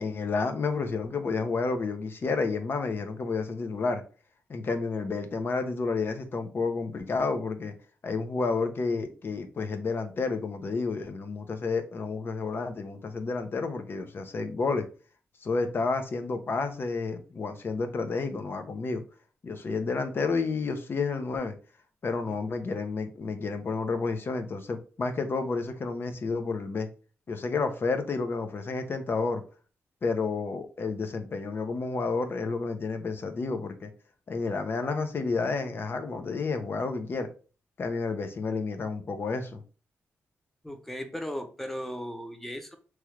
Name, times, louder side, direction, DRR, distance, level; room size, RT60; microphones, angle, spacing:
voice 1, 0.0-4.0 4.5-7.7 8.0-14.8 15.4-19.0 19.4-21.6 22.0-26.9 27.3-29.4 30.0-33.9 34.3-37.3 37.8-39.6, left 4 dB, 45° left, 0.5 m, -30 dB
voice 2, 40.6-42.8, equal, 5° left, 0.6 m, -37 dB
3.1 x 2.4 x 3.0 m
wide cardioid pair, 120°, 5 cm